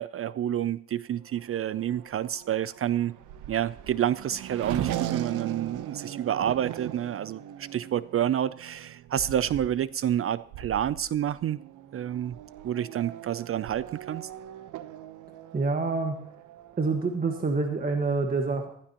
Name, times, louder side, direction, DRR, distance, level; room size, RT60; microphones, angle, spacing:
voice 1, 0.0-3.1 3.5-11.6 11.9-12.4 12.6-14.3, right 10 dB, 50° right, 0.5 m, -29 dB
Race car auto racing / Accelerating revving vroom, 1.2-17.5, right 12 dB, 80° right, 0.9 m, -40 dB
voice 2, 15.5-16.3 16.8-18.7, right 3 dB, 30° right, 1.5 m, -27 dB
15.0 x 14.5 x 3.0 m
cardioid pair, 90°, 30 cm